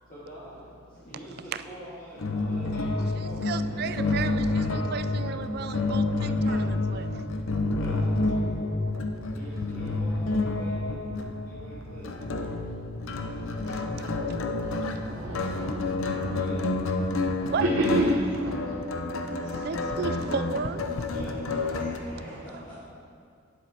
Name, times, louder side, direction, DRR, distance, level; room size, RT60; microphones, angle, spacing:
voice 1, 0.1-4.5 7.7-8.3 9.3-12.5 13.3-13.4 13.8-14.1 14.7-15.7 16.3-16.7 18.4-18.5 19.3-19.7 21.1-22.7, right 1 dB, 40° left, -11 dB, 2.0 m, -46 dB
sound 1, 2.2-22.0, left 2 dB, 80° left, 0.7 m, -29 dB
voice 2, 3.2-7.2 13.7-13.8 17.5-17.6 19.6-20.8, right 6 dB, 50° right, 11 dB, 0.3 m, -34 dB
voice 3, 3.7-4.0 5.6-5.7 15.0-16.4 17.4-18.5 20.0-20.1 20.9-21.0 22.3-22.4, right 1 dB, 75° right, -2 dB, 0.9 m, -29 dB
sound 2, 3.9-18.7, equal, 30° right, 1.7 m, -46 dB
9.5 x 7.7 x 4.3 m, 2.2 s
head